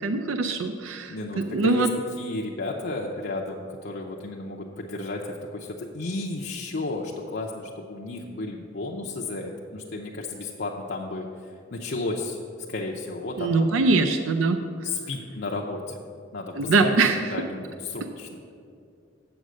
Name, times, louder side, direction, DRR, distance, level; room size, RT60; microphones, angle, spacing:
voice 1, 0.0-1.9 13.4-14.6 16.6-17.2, right 3 dB, 85° right, 6 dB, 0.5 m, -23 dB
voice 2, 1.1-1.9 2.2-5.2 5.5-5.7 5.9-7.6 7.9-11.3 11.7-12.4 12.7-13.7 14.8-15.8 16.3-18.3, left 2 dB, 55° left, -1 dB, 0.6 m, -33 dB
7.9 x 7.3 x 6.2 m, 2.4 s
head